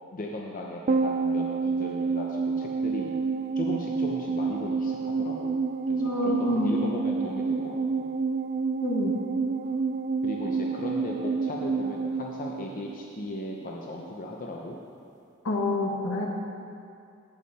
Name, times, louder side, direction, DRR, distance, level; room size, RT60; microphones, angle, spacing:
voice 1, 0.1-3.2 3.6-5.6 5.9-8.1 10.2-14.8, left 1 dB, 40° left, -1 dB, 0.7 m, -37 dB
sound 1, 0.9-13.4 13.7-13.8, right 4 dB, 35° right, 0.3 m, -29 dB
voice 2, 6.0-6.8 8.8-9.1 15.4-16.3, left 2 dB, 75° left, -1 dB, 1.4 m, -27 dB
15.0 x 5.6 x 4.1 m, 2.5 s
head